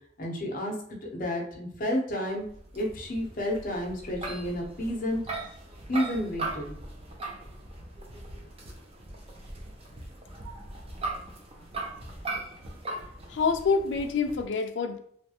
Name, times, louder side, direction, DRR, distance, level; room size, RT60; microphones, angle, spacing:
voice 1, 0.2-2.4 2.7-5.2 5.9-6.8, equal, 45° left, 0 dB, 0.7 m, -31 dB
sound 1, 2.4-14.5, right 2 dB, 30° right, 0.6 m, -39 dB
voice 2, 13.3-15.0, left 5 dB, 70° left, 5 dB, 0.4 m, -26 dB
3.3 x 2.4 x 2.8 m, 0.66 s
head